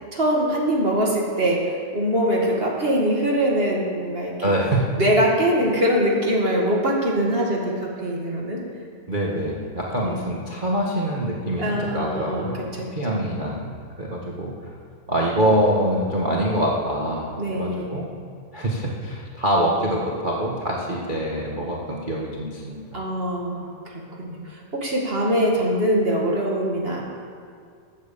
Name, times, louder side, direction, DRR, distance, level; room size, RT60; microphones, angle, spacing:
voice 1, 0.1-4.4 4.9-8.6 10.0-10.2 11.6-12.9 17.4-17.9 22.9-27.0, equal, 25° right, -2 dB, 1.3 m, -23 dB
voice 2, 4.4-4.9 9.1-13.7 14.0-14.5 15.1-18.1 18.5-22.8, right 1 dB, 75° right, -3 dB, 0.4 m, -25 dB
14.0 x 9.3 x 7.0 m, 2.2 s
omnidirectional pair, 3.8 m